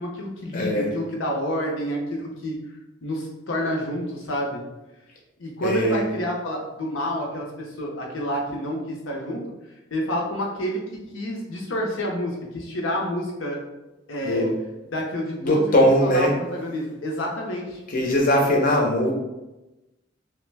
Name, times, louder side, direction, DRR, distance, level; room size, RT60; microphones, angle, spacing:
voice 1, 0.0-2.6 3.0-4.6 5.4-9.4 9.9-13.6 14.1-14.5 14.9-15.7 16.0-17.8, equal, 80° left, -1 dB, 0.7 m, -29 dB
voice 2, 0.5-0.9 5.6-6.0 14.2-14.5 15.4-16.3 17.9-19.1, equal, 45° left, -1 dB, 0.6 m, -20 dB
3.1 x 2.1 x 3.3 m, 1.0 s
head